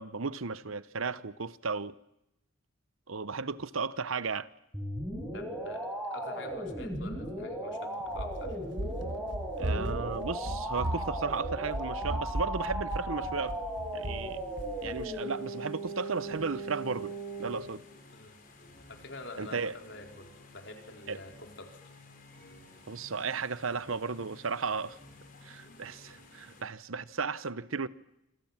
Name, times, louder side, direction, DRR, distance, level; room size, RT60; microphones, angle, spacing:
voice 1, 0.0-1.9 3.1-4.5 9.6-13.6 13.9-14.4 14.8-17.8 19.4-19.7 21.1-21.2 22.9-25.0 25.4-27.9, right 4 dB, 80° right, 0.9 m, -34 dB
sound 1, 4.7-17.6, right 1 dB, 5° right, 6.3 m, -37 dB
voice 2, 5.3-8.6 18.1-18.4 18.9-21.8, left 2 dB, 60° left, 4.6 m, -47 dB
Run, 8.1-15.1, right 1 dB, 60° right, 1.5 m, -37 dB
sound 2, 13.2-26.6, left 2 dB, 40° left, 5.8 m, -55 dB
27.0 x 27.0 x 7.4 m
head